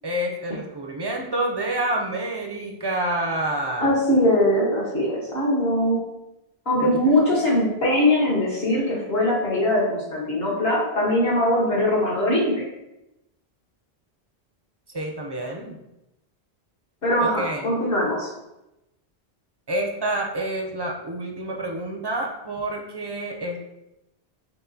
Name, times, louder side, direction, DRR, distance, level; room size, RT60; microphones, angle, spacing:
voice 1, 0.0-3.9 7.1-7.4 14.9-15.8 17.2-17.7 19.7-23.6, right 1 dB, 40° right, 0 dB, 0.3 m, -28 dB
voice 2, 3.8-6.1 6.6-12.6 17.0-18.3, left 1 dB, 65° left, -4 dB, 1.5 m, -21 dB
4.6 x 3.7 x 2.6 m, 0.92 s
omnidirectional pair, 1.1 m